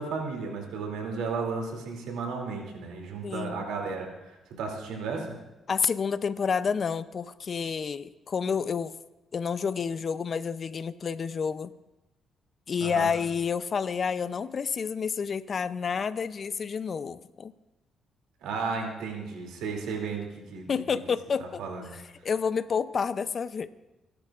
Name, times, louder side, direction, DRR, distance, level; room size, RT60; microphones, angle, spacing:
voice 1, 0.0-5.4 12.8-13.1 18.4-20.7 21.6-21.9, right 4 dB, 90° right, 1 dB, 2.7 m, -34 dB
voice 2, 3.2-3.6 5.7-9.0 9.3-11.7 12.7-17.5 20.7-21.6 21.9-23.7, left 6 dB, 45° left, 14 dB, 0.5 m, -29 dB
30.0 x 11.5 x 2.5 m, 1.0 s
cardioid pair, 90°, 0 cm